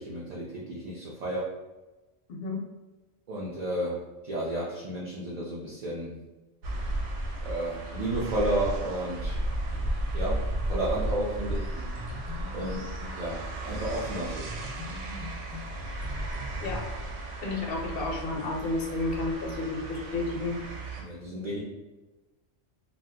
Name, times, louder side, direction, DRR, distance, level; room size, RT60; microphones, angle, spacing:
voice 1, 0.0-1.5 3.3-6.2 7.4-9.4 10.1-11.7 12.5-12.9 13.1-14.5 21.0-21.6, right 1 dB, 50° right, -6 dB, 0.5 m, -32 dB
voice 2, 2.3-2.6 16.6-16.9 17.4-20.6, left 3 dB, 60° left, 1 dB, 0.8 m, -31 dB
sound 1, 6.6-21.0, right 1 dB, 90° right, 0.9 m, -34 dB
sound 2, 11.8-13.2 14.4-16.8, left 1 dB, 20° right, 0.7 m, -43 dB
2.7 x 2.2 x 3.5 m, 1.1 s
omnidirectional pair, 1.2 m